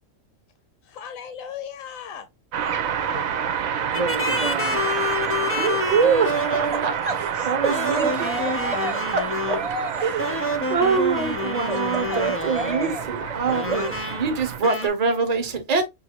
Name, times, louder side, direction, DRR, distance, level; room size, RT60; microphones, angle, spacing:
voice 1, 0.8-2.3 2.5-3.3, left 8 dB, 80° left, 1.0 m, -38 dB
sound 1, 2.5-14.6, right 8 dB, 85° right, 1.1 m, -29 dB
voice 2, 3.8-4.8 7.0-9.0 9.5-10.1 11.7-14.0, right 3 dB, 60° right, 0.3 m, -30 dB
sound 2, 3.9-6.9 7.6-9.7 10.2-13.0 13.5-14.3 14.6-14.9, left 2 dB, 20° left, 0.3 m, -28 dB
voice 3, 5.4-8.3 9.1-9.6 10.0-15.8, right 5 dB, 35° right, 0.8 m, -25 dB
5.6 x 2.6 x 2.8 m
omnidirectional pair, 1.4 m